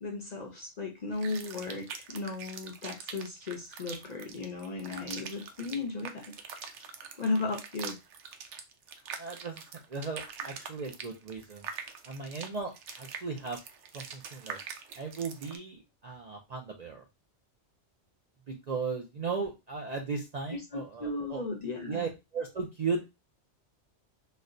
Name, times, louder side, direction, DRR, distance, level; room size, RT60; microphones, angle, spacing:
voice 1, 0.0-6.3 6.8-6.9 7.2-8.0 20.5-22.1, left 3 dB, 45° left, 3 dB, 0.6 m, -35 dB
sound 1, 1.1-15.6, right 6 dB, 85° right, 0.9 m, -44 dB
voice 2, 9.2-9.6 9.9-11.7 12.1-12.7 13.0-13.6 13.9-14.6 15.0-17.0 18.5-21.4 21.9-23.1, right 4 dB, 50° right, 1 dB, 0.5 m, -36 dB
4.2 x 2.1 x 2.5 m, 0.23 s
omnidirectional pair, 1.2 m